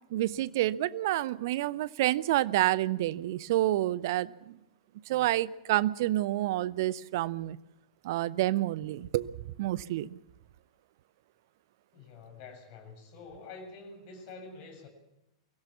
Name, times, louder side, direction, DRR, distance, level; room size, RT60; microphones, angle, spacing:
voice 1, 0.1-4.6 5.1-7.6 8.0-9.3 9.6-10.2, right 15 dB, 50° right, 19 dB, 0.7 m, -28 dB
voice 2, 11.9-14.9, left 4 dB, 40° left, 3 dB, 6.7 m, -47 dB
23.5 x 16.5 x 7.2 m, 0.89 s
figure-of-eight pair, 100°, 2 cm